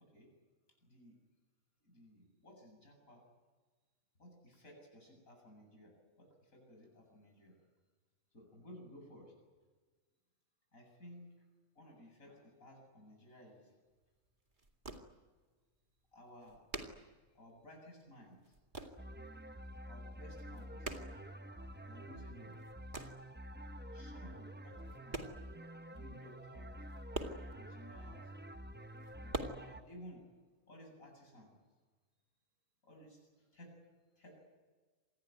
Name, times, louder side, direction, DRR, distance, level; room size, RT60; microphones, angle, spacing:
voice 1, 0.8-1.1 1.8-3.2 4.2-7.6 8.3-9.3 10.7-11.5 11.7-13.7 16.1-17.0 17.3-18.6 19.8-20.8 21.8-22.5 23.9-25.5 25.9-26.8 27.5-28.3 29.2-30.2 30.7-31.6 32.8-33.7 34.2-34.5, equal, 85° left, 1 dB, 8.4 m, -57 dB
sound 1, 13.9-14.0 14.3-15.4 15.8-15.9 16.1-17.9 18.1-19.1 19.4-19.9 20.2-21.9 22.3-23.3 24.1-24.2 24.7-25.7 25.9-26.0 26.3-26.4 26.7-28.1 28.6-29.4, right 2 dB, 35° right, 2.4 m, -45 dB
sound 2, 19.0-29.8, equal, 10° right, 0.8 m, -49 dB
27.0 x 20.0 x 9.3 m, 1.4 s
omnidirectional pair, 1.4 m